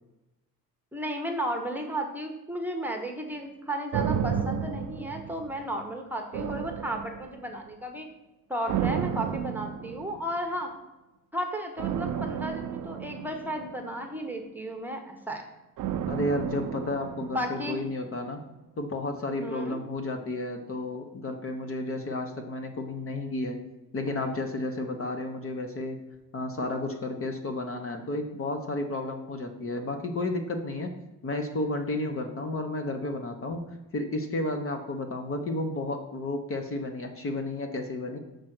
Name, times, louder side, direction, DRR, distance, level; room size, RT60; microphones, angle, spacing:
voice 1, 0.9-8.1 8.5-10.7 11.3-15.4 17.3-17.8 19.4-19.8, equal, 5° right, 3 dB, 0.9 m, -34 dB
sound 1, 3.9-5.8 6.3-7.6 8.7-10.4 11.8-14.2 15.8-18.0 18.2-18.3, right 8 dB, 60° right, 0.6 m, -32 dB
voice 2, 16.1-18.4 18.8-23.6 23.9-26.0 26.3-30.9 31.2-33.7 33.9-38.2, left 2 dB, 35° left, 6 dB, 0.9 m, -32 dB
6.5 x 5.2 x 6.0 m, 1.0 s
cardioid pair, 150°, 36 cm